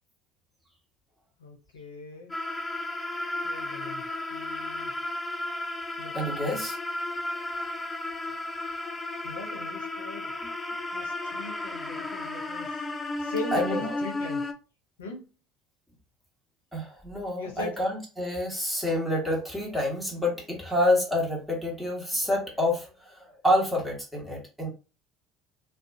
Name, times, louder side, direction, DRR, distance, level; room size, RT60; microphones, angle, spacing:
voice 1, 1.4-2.3 3.4-4.0 4.3-4.9 6.0-6.6 9.2-10.3 10.9-12.8 13.2-14.5 15.0-15.3 17.4-17.7, left 3 dB, 85° left, 2 dB, 0.5 m, -39 dB
sound 1, 2.3-14.5, left 2 dB, 20° left, 0.4 m, -33 dB
voice 2, 6.1-6.8 13.5-13.9 16.7-24.7, left 1 dB, 5° right, -2 dB, 1.2 m, -28 dB
2.3 x 2.1 x 2.5 m, 0.34 s
hypercardioid pair, 65°, 0 cm